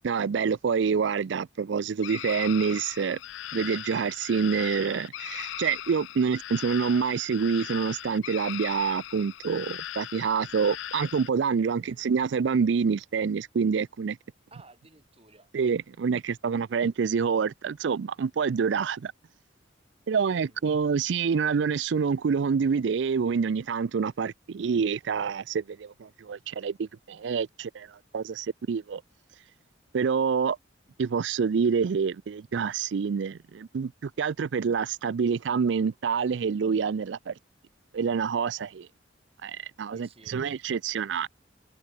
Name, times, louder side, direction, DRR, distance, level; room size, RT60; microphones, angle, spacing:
voice 1, 0.0-3.2 3.5-14.2 15.5-19.1 20.1-27.9 28.1-29.0 29.9-30.6 31.0-37.3 37.9-38.9 39.4-41.3, right 6 dB, 70° right, 0.4 m, -27 dB
sound 1, 2.0-11.3, left 13 dB, 80° left, 0.4 m, -39 dB
voice 2, 11.6-12.0 14.5-15.5 20.3-20.6 39.9-40.4, right 2 dB, 30° right, 4.5 m, -55 dB
head